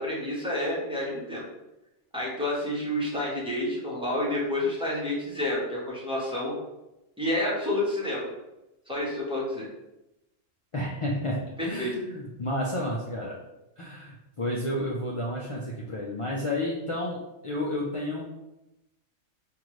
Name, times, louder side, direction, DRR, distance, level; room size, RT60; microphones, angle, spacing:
voice 1, 0.0-1.4 2.1-6.6 7.2-8.3 8.9-9.7 11.6-11.9, left 1 dB, 5° right, -6 dB, 1.0 m, -29 dB
voice 2, 10.7-13.4 13.8-17.2 17.4-18.2, left 1 dB, 50° left, -4 dB, 0.4 m, -31 dB
5.5 x 2.5 x 3.1 m, 0.95 s
omnidirectional pair, 1.3 m